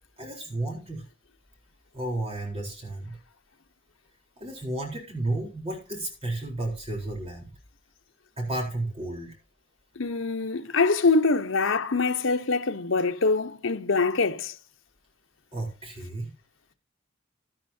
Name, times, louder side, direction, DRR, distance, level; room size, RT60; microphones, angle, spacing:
voice 1, 0.2-1.0 1.9-3.2 4.4-7.5 8.4-9.3 15.5-16.3, right 2 dB, 30° right, 4.0 m, -32 dB
voice 2, 10.0-14.5, left 3 dB, 85° left, 0.9 m, -24 dB
12.0 x 12.0 x 2.8 m
head